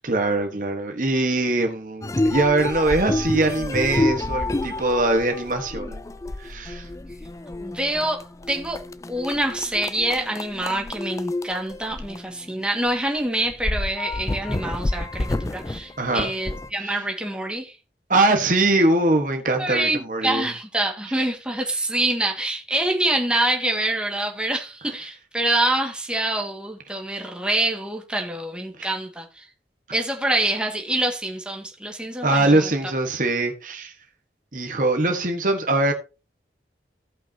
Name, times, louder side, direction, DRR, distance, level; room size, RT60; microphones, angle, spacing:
voice 1, 0.0-6.0 6.4-6.9 16.0-16.3 16.8-17.0 18.1-20.5 28.8-28.9 32.2-33.9 34.5-35.9, right 2 dB, 45° right, 1.4 m, -22 dB
sound 1, 2.0-12.9 13.2-13.3 13.5-16.7, left 2 dB, 15° left, 0.4 m, -29 dB
voice 2, 7.6-8.8 9.1-17.8 19.6-29.5 29.9-32.7, right 1 dB, 5° right, 1.8 m, -26 dB
17.0 x 5.8 x 2.8 m
head